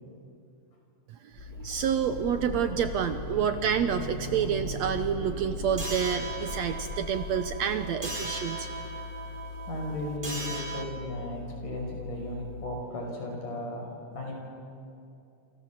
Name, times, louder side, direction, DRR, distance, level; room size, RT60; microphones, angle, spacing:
voice 1, 1.1-8.7, right 8 dB, 70° right, 9 dB, 1.8 m, -29 dB
sound 1, 1.3-9.1 9.4-9.5, left 2 dB, 15° left, 2.1 m, -40 dB
sound 2, 1.4-12.8, left 5 dB, 45° left, 1.7 m, -42 dB
sound 3, 5.8-10.8, right 2 dB, 20° right, 1.8 m, -38 dB
voice 2, 9.7-13.9 14.2-14.3, left 1 dB, 70° left, 1 dB, 7.0 m, -35 dB
29.0 x 27.5 x 7.4 m, 2.5 s
omnidirectional pair, 3.8 m